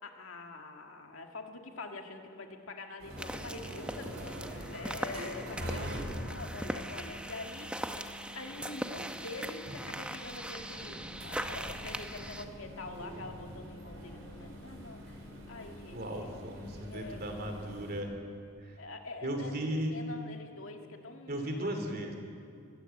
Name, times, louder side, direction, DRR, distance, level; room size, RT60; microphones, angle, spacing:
voice 1, 0.0-8.1 8.3-15.2 15.5-16.4 16.7-17.5 18.8-21.7, left 3 dB, 80° left, 3 dB, 2.0 m, -45 dB
sound 1, 3.0-18.0, equal, 70° right, 4.2 m, -44 dB
sound 2, 3.2-12.5, right 1 dB, 5° right, 0.7 m, -40 dB
voice 2, 15.9-18.1 18.6-18.8 19.2-20.0 21.3-22.1, right 1 dB, 50° right, 4 dB, 3.0 m, -36 dB
21.0 x 16.5 x 7.9 m, 2.5 s
head